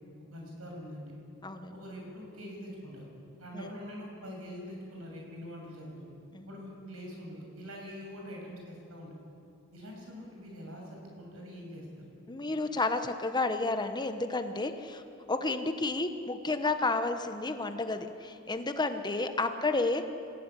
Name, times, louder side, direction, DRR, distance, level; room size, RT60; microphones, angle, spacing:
voice 1, 0.3-1.1 1.7-3.1 3.4-6.1 6.4-9.2 9.7-11.8, equal, 75° right, -1 dB, 7.5 m, -44 dB
voice 2, 12.3-15.0 15.3-20.0, left 3 dB, 20° left, 8 dB, 1.0 m, -31 dB
26.0 x 16.0 x 9.9 m, 2.6 s
head